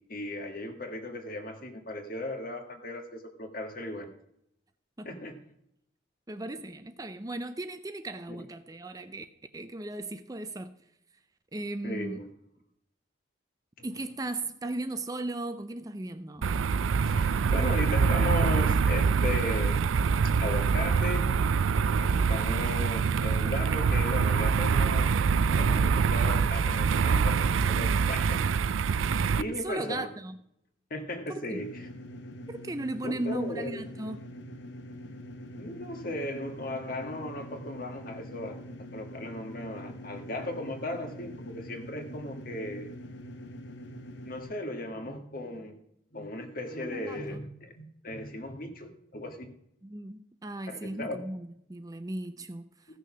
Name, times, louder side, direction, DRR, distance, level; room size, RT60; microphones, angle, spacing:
voice 1, 0.0-4.1 5.0-5.4 11.8-12.3 13.8-13.9 17.1-19.8 20.4-21.4 22.0-25.1 25.4-28.4 29.3-30.1 30.9-31.9 33.0-33.8 35.6-38.6 38.9-42.9 44.2-45.7 46.1-49.5 50.7-51.3, left 1 dB, 45° left, 1.6 m, -36 dB
voice 2, 6.3-9.3 9.5-10.7 11.5-12.2 13.8-16.5 29.6-30.4 31.3-31.6 32.5-34.3 46.8-47.4 49.8-52.8, right 2 dB, 20° right, 0.5 m, -37 dB
sound 1, 16.4-29.4, right 5 dB, 80° right, 0.4 m, -25 dB
sound 2, 31.5-44.4, equal, 60° left, 1.0 m, -44 dB
15.0 x 6.6 x 6.1 m
head